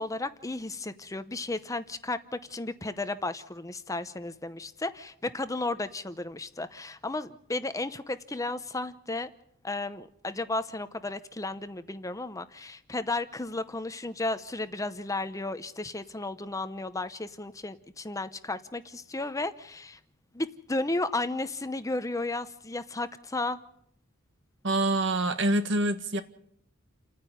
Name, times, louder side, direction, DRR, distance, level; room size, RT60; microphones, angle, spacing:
voice 1, 0.0-9.3 9.6-20.0 20.3-23.6, left 2 dB, 15° left, 0.8 m, -34 dB
voice 2, 24.6-26.2, right 1 dB, 60° right, 1.6 m, -26 dB
29.5 x 10.0 x 9.3 m
head